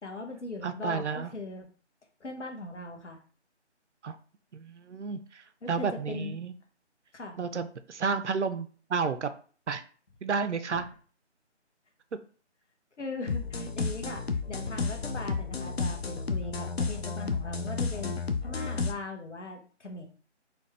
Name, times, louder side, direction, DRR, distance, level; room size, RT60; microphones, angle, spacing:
voice 1, 0.0-1.7 2.2-3.2 5.6-6.4 7.1-7.4 10.7-10.8 13.0-20.0, left 2 dB, 75° left, 3 dB, 1.0 m, -40 dB
voice 2, 0.6-1.3 4.0-4.2 4.5-6.5 7.4-9.3 9.7-9.8 10.2-10.9, right 5 dB, 75° right, 10 dB, 0.5 m, -31 dB
sound 1, 13.3-18.9, left 4 dB, 60° left, 0.5 m, -32 dB
4.1 x 2.3 x 3.3 m, 0.41 s
figure-of-eight pair, 160°, 36 cm